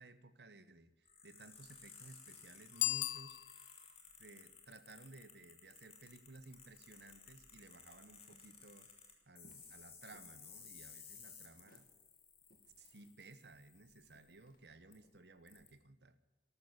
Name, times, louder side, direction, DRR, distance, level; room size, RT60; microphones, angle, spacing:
voice 1, 0.0-3.4 4.2-8.9 9.3-11.9 12.8-16.2, right 2 dB, 65° right, 13 dB, 1.1 m, -58 dB
sound 1, 1.0-14.4 14.9-15.0 15.5-15.7, left 6 dB, 35° left, 3.0 m, -58 dB
Bicycle bell, 2.7-4.0, left 16 dB, 75° left, 0.5 m, -38 dB
sound 2, 8.3-15.7, equal, 50° left, 2.1 m, -71 dB
13.5 x 13.0 x 8.5 m, 1.1 s
head